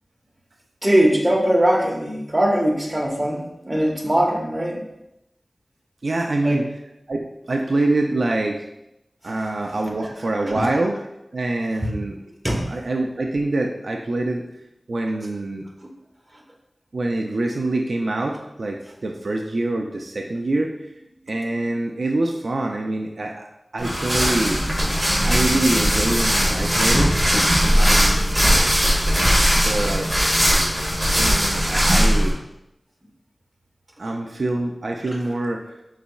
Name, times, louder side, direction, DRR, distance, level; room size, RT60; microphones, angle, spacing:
voice 1, 0.8-4.8 6.4-6.6 9.2-9.3 10.4-10.6 11.8-11.9 12.4-12.6 15.8-15.9 34.0-34.1, right 1 dB, 25° right, -1 dB, 1.0 m, -21 dB
voice 2, 6.0-6.6 7.1-8.7 9.2-11.0 11.3-12.2 12.7-14.4 14.9-15.7 16.9-20.9 21.3-23.5 23.7-24.6 24.9-25.0 25.2-27.1 27.8-28.2 29.5-30.1 31.0-32.3 34.0-35.6, right 2 dB, 75° right, 2 dB, 0.4 m, -25 dB
sound 1, 23.8-32.3, equal, ahead, 1.5 m, -19 dB
5.1 x 4.0 x 2.3 m, 0.86 s
wide cardioid pair, 55°, 0 cm